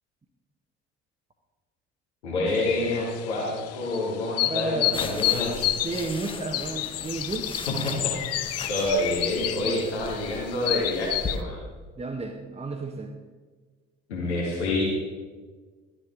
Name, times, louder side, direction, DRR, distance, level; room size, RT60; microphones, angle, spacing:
voice 1, 2.2-5.8 7.8-7.9 8.7-11.6 14.1-14.8, left 2 dB, 75° left, -4 dB, 1.8 m, -27 dB
sound 1, 2.5-11.4, left 13 dB, 50° left, 0.6 m, -30 dB
voice 2, 4.4-4.9 5.8-7.5 9.6-10.1 12.0-13.1, right 3 dB, 20° right, 1 dB, 1.0 m, -33 dB
sound 2, 4.9-11.4, left 2 dB, 15° left, 1.0 m, -39 dB
12.0 x 10.0 x 3.8 m, 1.4 s
figure-of-eight pair, 45°, 33 cm